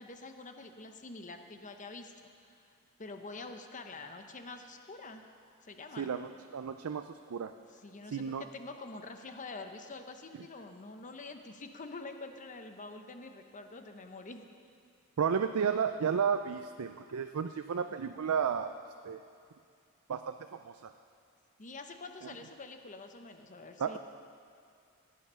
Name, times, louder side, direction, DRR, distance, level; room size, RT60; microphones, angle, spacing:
voice 1, 0.0-2.1 2.5-2.6 3.0-5.2 5.6-6.1 7.7-14.4 21.6-24.0, left 3 dB, 35° left, 6 dB, 0.9 m, -46 dB
voice 2, 6.0-7.5 8.1-8.4 15.2-18.7 19.0-19.2 20.1-20.9 23.8-24.0, right 7 dB, 80° right, 8 dB, 0.5 m, -33 dB
16.5 x 9.6 x 5.6 m, 2.4 s
head